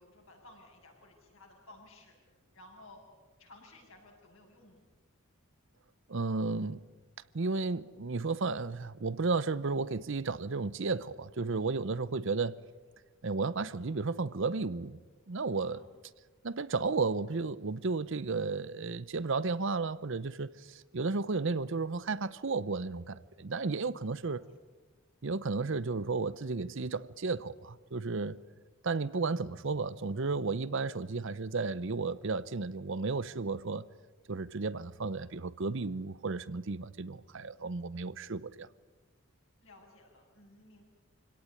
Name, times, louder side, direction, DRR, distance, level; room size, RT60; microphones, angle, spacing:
voice 1, 0.0-2.2 2.5-3.0 3.4-4.8 15.7-15.9 24.0-24.4 39.6-40.8, left 2 dB, 60° left, 7.1 m, -56 dB
voice 2, 6.1-6.8 7.3-12.6 13.2-15.0 15.3-15.8 16.4-24.4 25.2-28.4 28.8-33.9 34.3-38.7, right 4 dB, 55° right, 0.7 m, -33 dB
25.5 x 17.5 x 9.9 m
head